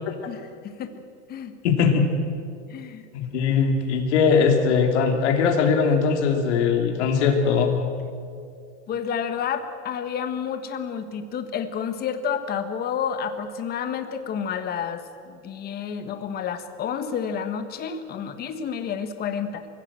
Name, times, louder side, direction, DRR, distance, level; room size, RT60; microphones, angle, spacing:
voice 1, 0.3-1.0 1.3-1.5 2.7-3.0 8.9-19.7, left 7 dB, 25° left, 8 dB, 1.6 m, -30 dB
voice 2, 1.6-2.1 3.1-7.9, left 5 dB, 65° left, 3 dB, 3.3 m, -20 dB
24.0 x 16.5 x 7.7 m, 2.3 s
supercardioid pair, 145°, 36 cm